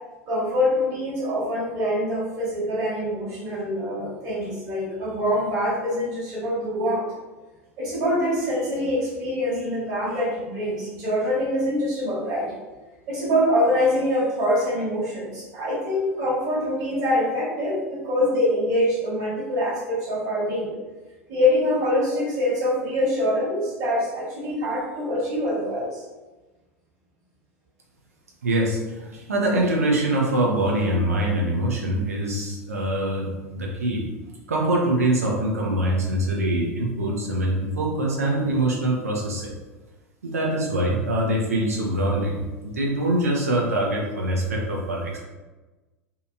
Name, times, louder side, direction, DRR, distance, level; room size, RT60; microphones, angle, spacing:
voice 1, 0.3-7.0 7.8-12.6 13.1-20.8 21.3-26.0, left 1 dB, 45° right, -8 dB, 1.3 m, -24 dB
voice 2, 28.4-33.3 33.5-34.0 34.5-39.5 40.2-45.2, right 1 dB, 75° right, -2 dB, 0.6 m, -24 dB
2.8 x 2.5 x 2.3 m, 1.2 s
figure-of-eight pair, 80°, 8 cm